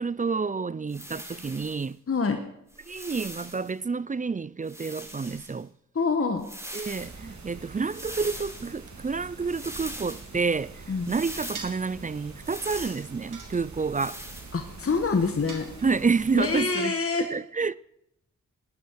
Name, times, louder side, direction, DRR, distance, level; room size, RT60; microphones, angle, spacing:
voice 1, 0.0-2.0 2.9-5.7 6.7-14.2 15.8-17.0 17.3-17.8, right 4 dB, 25° right, 0.4 m, -29 dB
sound 1, 0.9-1.9 2.7-3.7 4.6-5.6 6.4-7.2 7.9-8.7 9.5-10.3 11.0-11.7 12.4-13.1 13.9-14.5, equal, 10° right, 4.7 m, -41 dB
voice 2, 2.1-2.4 5.9-6.5 10.9-11.1 14.5-15.7 16.3-17.3, left 4 dB, 45° left, 1.4 m, -26 dB
sound 2, 7.0-16.6, right 3 dB, 60° right, 2.6 m, -45 dB
sound 3, 11.5-11.9 13.3-14.0 15.5-16.2, right 5 dB, 75° right, 2.0 m, -43 dB
17.5 x 10.0 x 4.7 m
cardioid pair, 40°, 31 cm